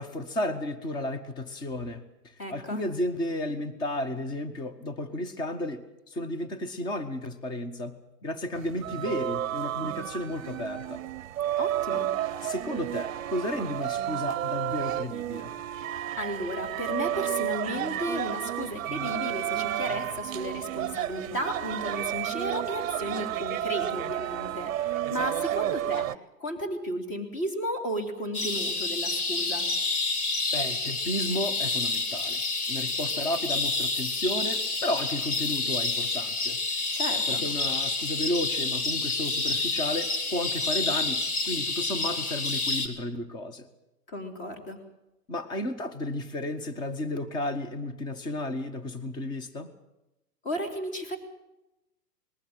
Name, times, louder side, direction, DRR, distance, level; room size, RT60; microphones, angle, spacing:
voice 1, 0.0-11.0 11.9-12.0 12.4-15.5 30.5-32.4 32.7-36.6 37.1-43.7 45.3-49.7, left 1 dB, 10° left, 11 dB, 0.8 m, -33 dB
voice 2, 2.4-2.8 11.6-12.1 16.1-26.1 26.4-29.7 36.9-37.4 44.1-44.8 50.4-51.2, equal, 25° left, 5 dB, 3.3 m, -34 dB
sound 1, 8.6-26.2, right 12 dB, 55° right, 0.7 m, -31 dB
sound 2, 28.3-42.9, left 3 dB, 65° left, 3.2 m, -29 dB
20.5 x 15.0 x 8.9 m, 0.95 s
hypercardioid pair, 140°, 47 cm